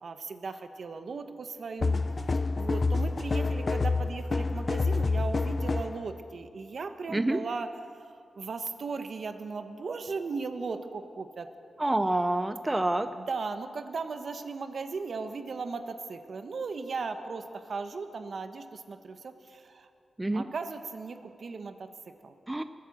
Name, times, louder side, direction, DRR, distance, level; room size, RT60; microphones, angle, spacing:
voice 1, 0.0-2.0 2.5-8.0 8.4-11.5 13.2-19.9 20.3-22.3, right 4 dB, 60° right, 8 dB, 1.0 m, -37 dB
sound 1, 1.8-6.0, left 3 dB, 40° left, 0.5 m, -28 dB
voice 2, 7.1-7.4 11.8-13.1 20.2-20.5 22.5-22.6, right 1 dB, 15° right, 10 dB, 0.5 m, -27 dB
22.0 x 8.7 x 7.3 m, 2.5 s
wide cardioid pair, 90°, 0 cm